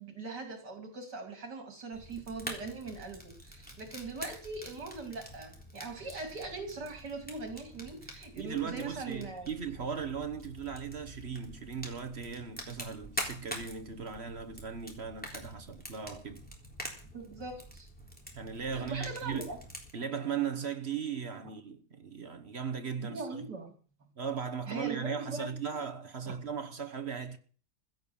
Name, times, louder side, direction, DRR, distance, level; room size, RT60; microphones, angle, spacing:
voice 1, 0.0-9.5 17.1-17.9 18.7-19.6 23.0-23.7 24.7-25.5, right 3 dB, 70° right, 3.1 m, -41 dB
Fire, 1.9-19.9, equal, 5° left, 3.6 m, -46 dB
voice 2, 8.4-16.4 18.4-19.4 19.9-23.5 24.2-27.4, right 7 dB, 40° right, 1.2 m, -37 dB
16.0 x 11.0 x 7.0 m
omnidirectional pair, 1.9 m